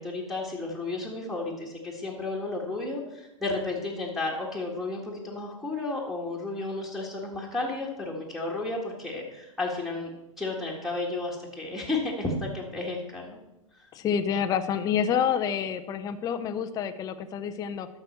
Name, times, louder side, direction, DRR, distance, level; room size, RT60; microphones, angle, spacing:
voice 1, 0.0-10.1 10.4-13.4 13.7-13.9, left 2 dB, ahead, -3 dB, 1.8 m, -32 dB
voice 2, 13.9-17.9, left 8 dB, 20° left, 9 dB, 0.6 m, -28 dB
12.0 x 6.7 x 4.5 m, 0.94 s
hypercardioid pair, 115°, 18 cm